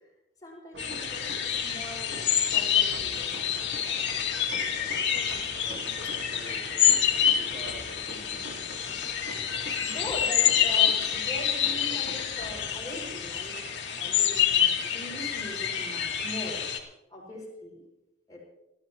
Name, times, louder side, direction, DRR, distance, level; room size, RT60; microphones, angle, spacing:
voice 1, 0.4-4.2 9.8-13.6 14.0-16.7 17.1-17.8 18.3-18.4, left 1 dB, 20° left, -3 dB, 6.4 m, -41 dB
sound 1, 0.7-13.2, right 1 dB, 90° right, 1.7 m, -45 dB
sound 2, 0.8-16.8, left 9 dB, 80° left, 2.2 m, -27 dB
voice 2, 4.8-8.9, equal, 30° right, -3 dB, 3.4 m, -49 dB
26.5 x 14.0 x 3.0 m, 0.93 s
head